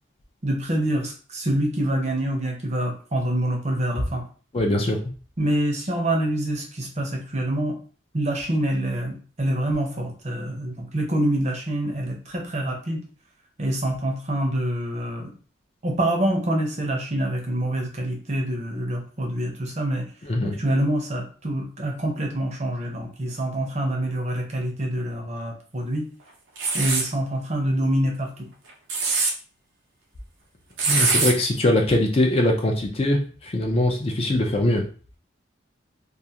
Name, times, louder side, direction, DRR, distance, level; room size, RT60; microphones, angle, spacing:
voice 1, 0.4-4.2 5.4-7.8 8.1-13.0 13.6-15.3 15.8-20.1 20.4-26.1 26.7-28.5, right 1 dB, 35° right, 1 dB, 0.6 m, -26 dB
voice 2, 4.5-5.0 20.3-20.5 30.9-34.8, left 1 dB, 30° left, 2 dB, 0.4 m, -22 dB
sound 1, 26.6-27.1 28.7-29.3 30.8-31.3, right 4 dB, 80° right, 0.6 m, -22 dB
2.4 x 2.3 x 2.7 m, 0.39 s
head